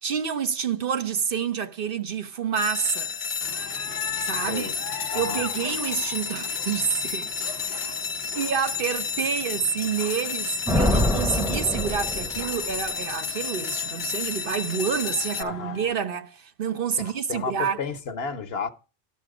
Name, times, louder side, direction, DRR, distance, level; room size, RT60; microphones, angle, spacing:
voice 1, 0.0-3.1 4.2-4.7 5.1-7.9 8.3-17.8, right 7 dB, 60° right, 0.9 m, -28 dB
sound 1, 2.6-15.4, left 5 dB, 50° left, 0.8 m, -31 dB
sound 2, 3.4-15.9, left 8 dB, 90° left, 1.0 m, -41 dB
voice 2, 5.1-5.5 15.4-15.8 17.0-18.7, left 5 dB, 70° left, 1.1 m, -32 dB
Thunder, 10.7-12.9, left 1 dB, 5° right, 0.8 m, -25 dB
11.5 x 5.9 x 4.9 m
omnidirectional pair, 1.1 m